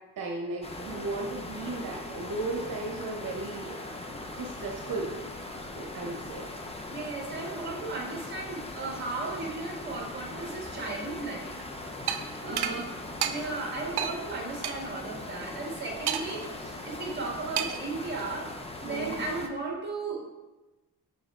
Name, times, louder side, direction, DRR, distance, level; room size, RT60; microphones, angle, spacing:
voice 1, 0.2-3.8 4.0-5.2 5.7-6.5 7.3-7.4 12.4-12.8 18.9-19.2, right 2 dB, 60° right, -1 dB, 1.0 m, -36 dB
sound 1, 0.6-19.5, left 2 dB, 15° left, 0.6 m, -40 dB
voice 2, 6.9-11.5 12.4-12.9 13.2-18.5 18.8-20.2, right 3 dB, 25° right, -1 dB, 1.7 m, -35 dB
sound 2, 12.1-12.2 12.6-12.7 13.2-13.3 14.0-14.1 14.6-14.7 16.1-16.5 17.6-17.9, right 9 dB, 80° right, 0.6 m, -29 dB
6.9 x 5.7 x 3.7 m, 1.1 s
wide cardioid pair, 150°, 38 cm